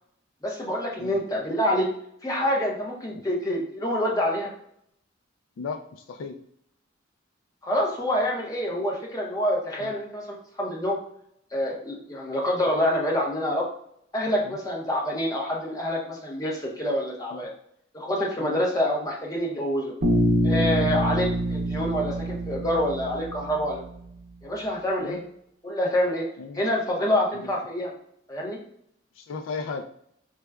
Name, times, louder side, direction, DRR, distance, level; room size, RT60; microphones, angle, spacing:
voice 1, 0.4-1.9 2.2-4.5 7.6-11.0 11.5-13.6 14.1-17.5 17.9-19.9 20.4-23.8 24.4-25.2 25.6-26.3 26.5-27.9 28.3-28.6, equal, 20° left, -2 dB, 0.7 m, -26 dB
voice 2, 5.6-6.4 9.8-9.9 14.4-14.6 17.3-17.5 18.4-18.6 20.8-21.0 25.0-25.2 26.4-26.6 27.3-27.5 29.2-29.8, left 4 dB, 75° left, 5 dB, 0.3 m, -36 dB
Bass guitar, 20.0-24.0, equal, 65° right, 0.7 m, -26 dB
4.6 x 2.2 x 2.3 m, 0.68 s
head